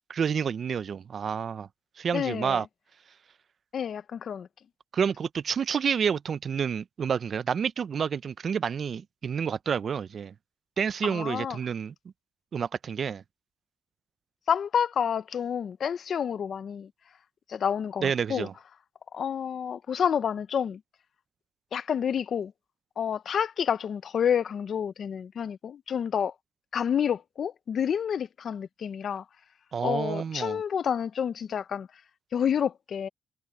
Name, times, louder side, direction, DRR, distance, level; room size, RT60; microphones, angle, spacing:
voice 1, 0.1-1.7 2.0-2.7 4.9-10.3 10.8-11.9 12.5-13.2 18.0-18.5 29.7-30.6, right 7 dB, 50° right, 0.6 m, -29 dB
voice 2, 2.1-2.7 3.7-4.5 11.0-11.6 14.5-16.9 17.5-18.5 19.1-20.8 21.7-22.5 23.0-26.3 26.7-29.2 29.8-31.9 32.3-33.1, left 8 dB, 55° left, 0.9 m, -29 dB
cardioid pair, 90°, 0 cm